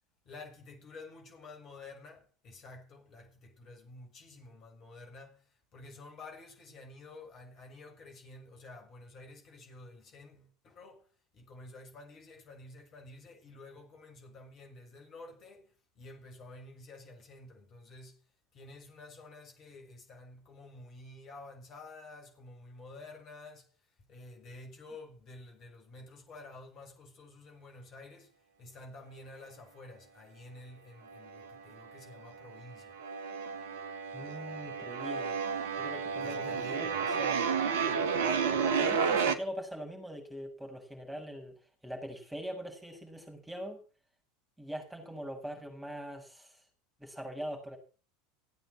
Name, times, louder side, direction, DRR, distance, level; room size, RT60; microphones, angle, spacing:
voice 1, 0.2-11.1 11.3-18.2 18.5-23.8 24.1-28.3 28.6-33.0 36.2-36.9, left 2 dB, 40° left, 7.2 m, -51 dB
sound 1, 31.1-31.9 32.2-39.3, right 6 dB, 60° right, 1.7 m, -32 dB
voice 2, 34.1-35.4 35.8-37.6 38.2-41.5 41.8-43.8 44.6-46.6 47.0-47.8, equal, 5° right, 7.0 m, -42 dB
17.0 x 8.8 x 7.7 m
figure-of-eight pair, 75°, 0 cm